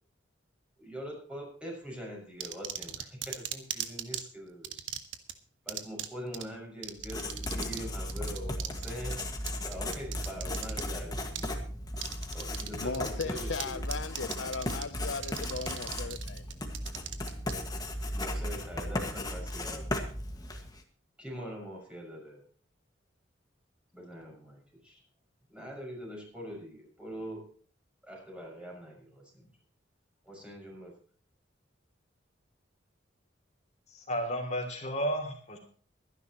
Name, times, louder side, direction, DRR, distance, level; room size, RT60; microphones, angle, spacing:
voice 1, 0.8-4.9 5.6-9.2 9.6-11.3 12.3-13.8 18.1-20.0 21.2-22.4 23.9-25.0 25.5-27.5 28.0-29.5 30.2-30.9, equal, 5° right, 6.1 m, -43 dB
sound 1, 2.4-4.2 4.6-5.3 5.7-6.1 6.3-6.4 6.8-7.8 8.1-10.8 11.4-11.5 12.0-12.7 12.9-13.6 13.9-14.8 15.2-17.5, right 10 dB, 90° right, 1.4 m, -37 dB
Writing, 7.0-20.8, left 1 dB, 20° left, 1.9 m, -36 dB
voice 2, 12.8-16.4, left 4 dB, 85° left, 0.8 m, -37 dB
voice 3, 33.9-35.6, equal, 40° left, 2.9 m, -33 dB
23.5 x 11.0 x 3.1 m
head